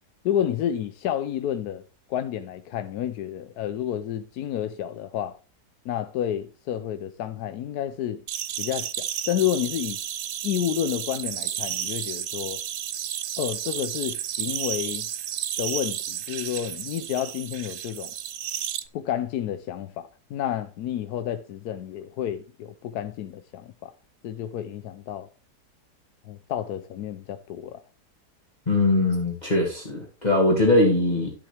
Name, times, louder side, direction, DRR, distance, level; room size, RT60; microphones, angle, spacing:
voice 1, 0.2-1.8 2.1-5.4 5.8-8.2 8.6-10.0 10.4-12.6 13.4-15.1 15.6-18.1 18.9-23.9 24.2-25.3 26.3-27.8, left 10 dB, 75° left, 1.1 m, -30 dB
sound 1, 8.3-18.8, right 10 dB, 60° right, 0.9 m, -32 dB
voice 2, 28.7-31.3, left 2 dB, 25° left, 2.2 m, -21 dB
11.5 x 7.7 x 3.3 m
omnidirectional pair, 1.7 m